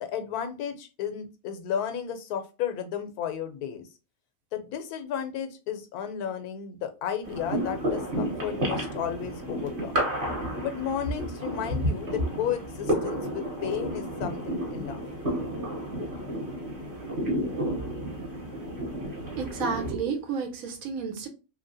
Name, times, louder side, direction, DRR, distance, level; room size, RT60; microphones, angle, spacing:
voice 1, 0.0-3.9 4.5-10.0 10.6-15.0, left 8 dB, 90° left, 1.1 m, -33 dB
sound 1, 7.2-19.9, equal, 40° right, 1.1 m, -31 dB
voice 2, 19.3-21.3, right 5 dB, 75° right, 1.1 m, -31 dB
3.0 x 2.8 x 2.6 m
omnidirectional pair, 1.5 m